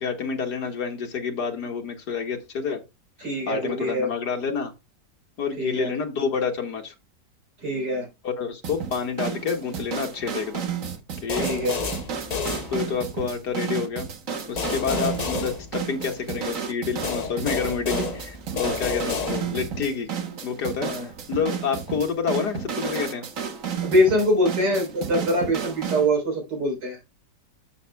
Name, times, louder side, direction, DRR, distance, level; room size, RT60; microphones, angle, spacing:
voice 1, 0.0-2.8 3.5-4.7 5.4-6.9 8.2-10.6 11.2-11.5 12.7-14.1 14.5-20.1 20.4-23.2, left 6 dB, 70° left, 2.2 m, -28 dB
voice 2, 3.2-4.1 5.6-5.9 7.6-8.1 11.4-11.8 20.8-21.1 23.8-27.0, equal, 80° right, 4.4 m, -23 dB
sound 1, 8.6-26.1, right 7 dB, 50° right, 1.4 m, -32 dB
sound 2, 11.3-13.2 14.6-16.3 17.0-19.8, left 4 dB, 40° left, 0.6 m, -30 dB
12.5 x 7.3 x 2.3 m
omnidirectional pair, 1.9 m